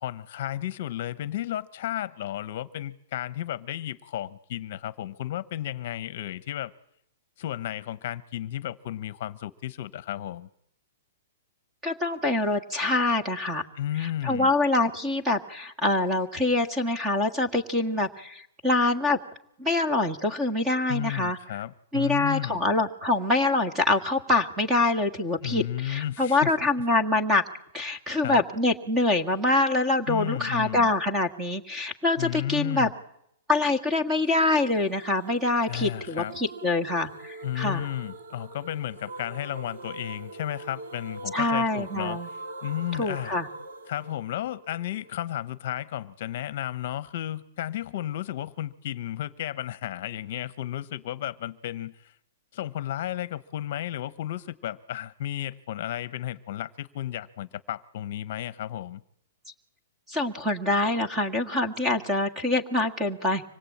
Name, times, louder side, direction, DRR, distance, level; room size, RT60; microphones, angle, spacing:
voice 1, 0.0-6.7 7.4-10.5 13.8-14.5 20.9-22.6 25.4-26.5 28.2-28.4 30.1-30.9 32.2-32.9 35.7-36.3 37.4-43.4 43.9-52.1 52.5-59.0, left 12 dB, 45° left, 16 dB, 1.0 m, -33 dB
voice 2, 11.8-13.6 14.0-19.2 19.6-21.4 21.9-27.4 27.7-32.9 33.5-37.9 41.3-42.3 43.0-43.5 60.1-63.4, left 2 dB, 10° right, 13 dB, 1.7 m, -25 dB
sound 1, 34.3-45.2, right 3 dB, 75° right, 2.2 m, -43 dB
25.0 x 21.5 x 8.6 m, 0.71 s
hypercardioid pair, 175°, 0 cm